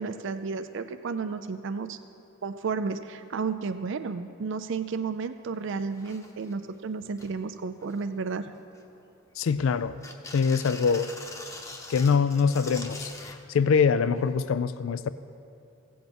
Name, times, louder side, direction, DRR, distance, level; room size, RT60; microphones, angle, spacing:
voice 1, 0.0-2.0 2.4-8.5, right 4 dB, 65° right, 10 dB, 0.4 m, -32 dB
sound 1, 5.5-5.6 5.9-6.5 7.0-7.3 7.8-8.3 8.7-9.5 10.0-13.4 14.4-14.5, left 2 dB, 15° left, 0.9 m, -43 dB
voice 2, 9.4-10.0 10.3-11.1 11.9-15.1, left 5 dB, 80° left, 14 dB, 0.4 m, -24 dB
15.5 x 7.8 x 5.3 m, 2.7 s
head